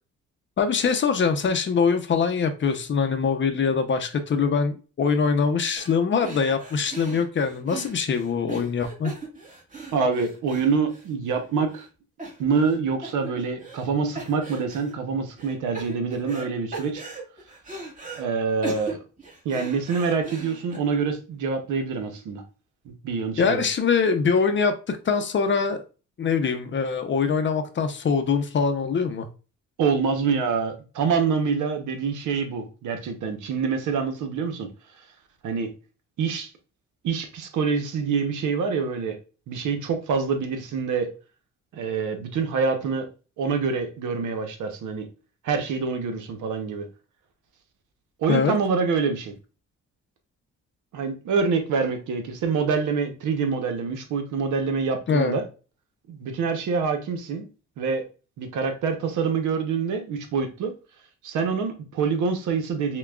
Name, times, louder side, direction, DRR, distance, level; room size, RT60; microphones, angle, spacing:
voice 1, 0.6-9.1 23.4-25.8 26.2-29.3 48.3-48.6 55.1-55.4, left 5 dB, 40° left, 0.6 m, -23 dB
sound 1, 5.8-6.0 6.2-11.4 11.7-11.9 12.2-12.8 13.0-13.9 14.2-14.9 15.4-16.5 16.7-18.2 18.6-20.8, right 3 dB, 25° right, 1.4 m, -39 dB
voice 2, 9.9-11.9 12.4-17.0 18.2-19.0 19.4-22.4 22.8-23.6 29.8-34.7 35.4-35.7 36.2-36.5 37.0-39.2 39.5-41.1 41.7-43.1 43.4-45.1 45.4-46.9 48.2-49.3 50.9-55.5 56.1-57.5 57.8-58.0 58.4-60.7 61.2-63.0, right 5 dB, 80° right, 0.9 m, -26 dB
5.8 x 2.3 x 2.3 m
cardioid pair, 90°, 30 cm